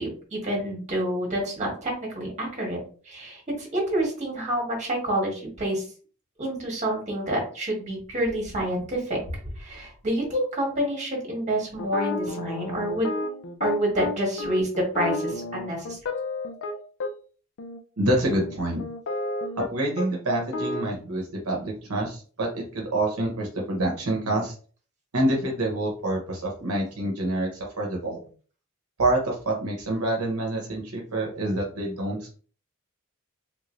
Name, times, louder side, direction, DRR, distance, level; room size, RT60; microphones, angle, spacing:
voice 1, 0.0-2.8 3.0-5.9 6.4-13.1 13.6-16.0, right 1 dB, 35° right, -2 dB, 1.7 m, -28 dB
sound 1, 11.8-17.1 17.6-17.8 18.3-19.7 20.0-20.1 20.4-20.9, left 3 dB, 60° left, 0.4 m, -31 dB
voice 2, 18.0-18.8 19.6-24.5 25.1-28.2 29.0-32.4, right 1 dB, 75° right, -1 dB, 0.9 m, -27 dB
3.6 x 3.1 x 2.5 m, 0.40 s
head